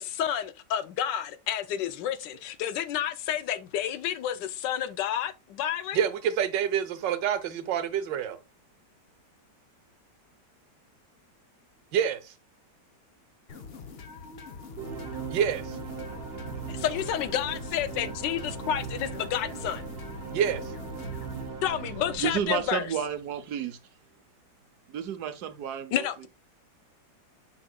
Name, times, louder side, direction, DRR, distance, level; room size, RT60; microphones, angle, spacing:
voice 1, 0.0-6.0 16.7-19.8 21.6-22.9 25.9-26.3, left 10 dB, 85° left, 1.4 m, -30 dB
voice 2, 5.9-8.4 11.9-12.3 15.3-15.8 20.3-20.6, right 8 dB, 85° right, 1.5 m, -27 dB
sound 1, 13.5-21.5, left 4 dB, 45° left, 0.9 m, -44 dB
sound 2, 14.8-23.2, right 5 dB, 40° right, 1.0 m, -39 dB
voice 3, 22.2-23.8 24.9-26.1, right 8 dB, 70° right, 1.2 m, -31 dB
7.4 x 5.7 x 2.3 m
omnidirectional pair, 1.9 m